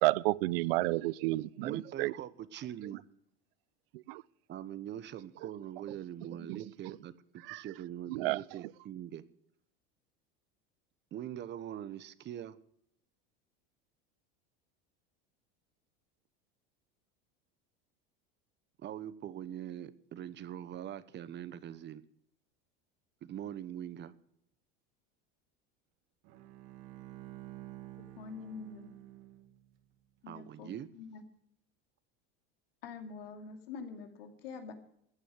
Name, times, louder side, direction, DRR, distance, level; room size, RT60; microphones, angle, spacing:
voice 1, 0.0-2.1 3.9-4.2 5.4-5.5 6.5-7.0 7.4-7.6 8.1-8.6, right 20 dB, 80° right, 0.6 m, -32 dB
voice 2, 1.6-3.1 4.5-9.3 11.1-12.6 18.8-22.0 23.2-24.1 30.3-30.9, right 10 dB, 40° right, 1.0 m, -42 dB
Bowed string instrument, 26.2-29.8, right 16 dB, 60° right, 1.9 m, -50 dB
voice 3, 28.0-28.9 30.2-31.2 32.8-34.7, left 5 dB, 85° left, 2.6 m, -45 dB
15.0 x 9.0 x 6.3 m
supercardioid pair, 115°, 29 cm